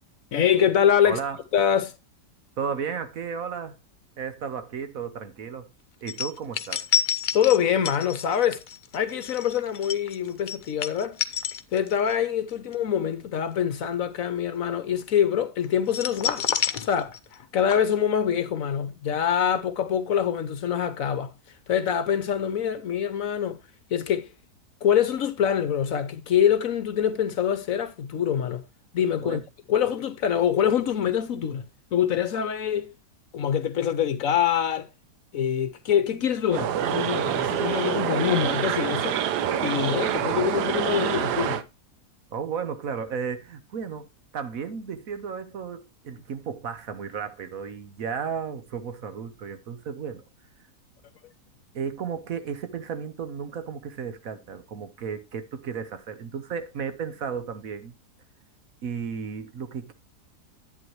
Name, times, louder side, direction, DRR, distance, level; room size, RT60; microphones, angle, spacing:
voice 1, 0.3-1.2 1.5-2.0 7.3-8.6 8.9-11.2 11.7-16.5 16.8-21.3 21.7-23.6 23.9-24.3 24.8-28.6 28.9-29.4 29.7-32.9 33.3-34.9 35.3-39.2 39.6-41.6, left 9 dB, 60° left, 1.1 m, -25 dB
voice 2, 1.0-1.4 2.6-3.8 4.2-5.7 6.0-6.9 29.2-29.4 42.3-44.1 44.3-50.2 51.7-57.9 58.8-59.9, right 6 dB, 60° right, 1.3 m, -34 dB
sound 1, 6.1-12.1 12.5-12.7 15.9-17.4 17.7-17.8, left 7 dB, 80° left, 0.4 m, -29 dB
sound 2, 36.5-41.6, right 10 dB, 85° right, 1.3 m, -26 dB
11.0 x 8.7 x 3.0 m
omnidirectional pair, 1.7 m